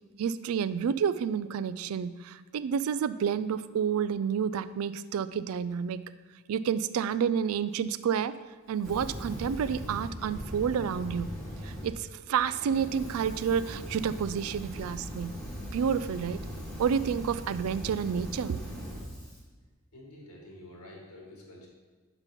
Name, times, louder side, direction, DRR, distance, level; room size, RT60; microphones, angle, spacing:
voice 1, 0.2-6.0 6.5-8.3 8.7-11.3 11.6-15.3 15.7-16.4 16.8-18.6, right 7 dB, 75° right, 14 dB, 0.3 m, -29 dB
Fire, 8.8-11.9 12.3-19.4, equal, 5° left, 1.2 m, -40 dB
voice 2, 19.9-21.7, left 1 dB, 90° left, -2 dB, 2.1 m, -49 dB
6.0 x 5.7 x 5.2 m, 1.4 s
head